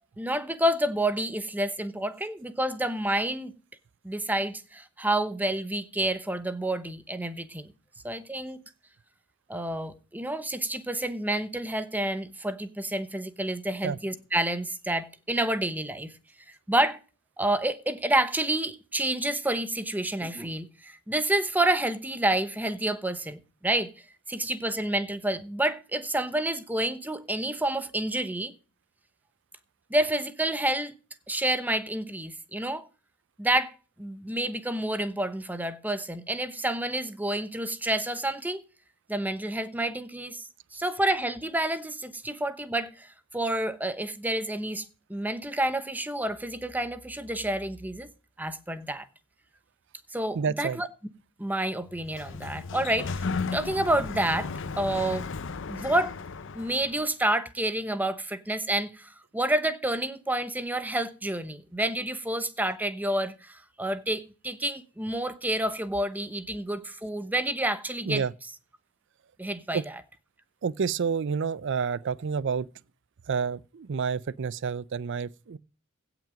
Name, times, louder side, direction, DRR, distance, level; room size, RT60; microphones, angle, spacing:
voice 1, 0.2-3.5 4.0-7.7 8.0-8.6 9.5-16.1 16.7-17.0 17.4-23.9 24.3-28.5 29.9-30.9 31.3-32.9 33.4-33.7 34.0-38.6 39.1-44.8 45.1-48.1 48.4-49.1 50.1-50.9 51.4-54.5 54.8-55.3 55.7-56.1 56.5-68.2 69.4-69.8, right 1 dB, 10° right, 0.9 m, -29 dB
voice 2, 50.3-50.8 68.1-68.3 69.7-69.8 70.6-72.7 73.3-75.6, right 6 dB, 60° right, 0.5 m, -29 dB
Sliding door, 51.9-57.0, left 4 dB, 65° left, 0.7 m, -35 dB
16.5 x 6.1 x 5.1 m
head